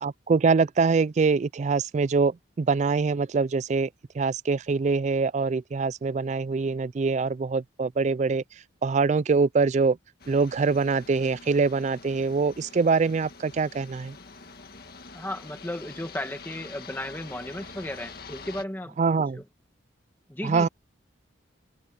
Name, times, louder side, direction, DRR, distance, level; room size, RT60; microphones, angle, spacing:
voice 1, 0.0-8.4 8.8-10.0 10.3-14.2 19.0-19.4 20.4-20.7, right 4 dB, 35° right, 0.3 m, -24 dB
sound 1, 10.2-18.6, left 4 dB, 50° left, 1.8 m, -46 dB
voice 2, 15.1-19.0 19.3-19.4 20.3-20.7, left 1 dB, 10° left, 1.3 m, -35 dB
open air
head